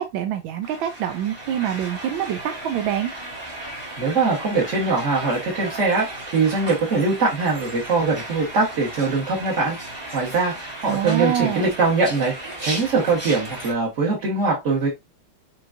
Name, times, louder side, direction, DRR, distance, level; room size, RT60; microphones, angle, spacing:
voice 1, 0.0-3.1 10.9-11.7, right 10 dB, 85° right, 1.4 m, -25 dB
sound 1, 0.6-13.7, right 1 dB, 15° right, 1.0 m, -35 dB
voice 2, 4.0-6.1 6.3-9.8 10.1-10.5 10.8-14.9, right 3 dB, 40° right, 1.5 m, -22 dB
6.0 x 3.1 x 2.6 m
omnidirectional pair, 2.1 m